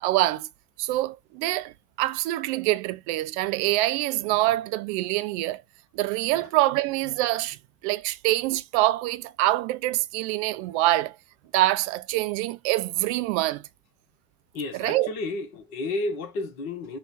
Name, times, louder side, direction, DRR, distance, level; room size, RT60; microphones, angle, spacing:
voice 1, 0.0-0.5 0.8-1.7 2.0-5.6 5.9-7.6 7.8-11.1 11.5-13.6 14.7-15.1, right 17 dB, 50° right, 0.5 m, -25 dB
voice 2, 14.5-17.0, left 2 dB, 60° left, 1.3 m, -31 dB
5.7 x 2.2 x 3.9 m
figure-of-eight pair, 70°, 46 cm